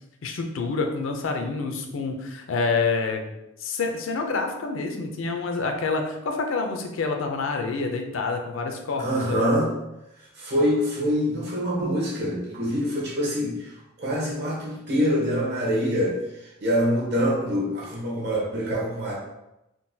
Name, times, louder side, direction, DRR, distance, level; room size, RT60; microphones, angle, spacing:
voice 1, 0.2-3.2 3.6-9.5, left 4 dB, 70° left, 4 dB, 0.4 m, -27 dB
voice 2, 9.0-9.7 10.2-19.1, equal, 55° right, -4 dB, 0.9 m, -25 dB
3.8 x 2.2 x 2.6 m, 0.91 s
head